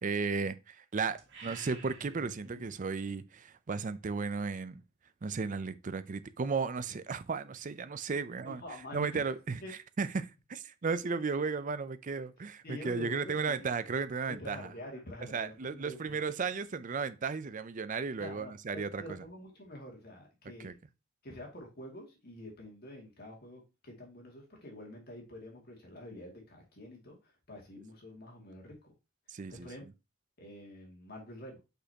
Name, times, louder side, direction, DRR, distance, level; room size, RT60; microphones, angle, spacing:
voice 1, 0.0-4.8 5.2-8.6 8.9-14.7 15.3-19.2 20.6-20.7 29.3-29.7, right 5 dB, 40° right, 0.5 m, -35 dB
sound 1, 1.2-2.8, right 3 dB, 60° right, 2.7 m, -49 dB
voice 2, 8.4-9.2 9.6-9.7 12.6-13.7 14.3-16.2 18.2-20.7 21.2-27.2 27.5-28.8 29.5-29.9 30.4-31.6, left 1 dB, 50° left, 2.3 m, -47 dB
6.4 x 5.4 x 2.9 m
head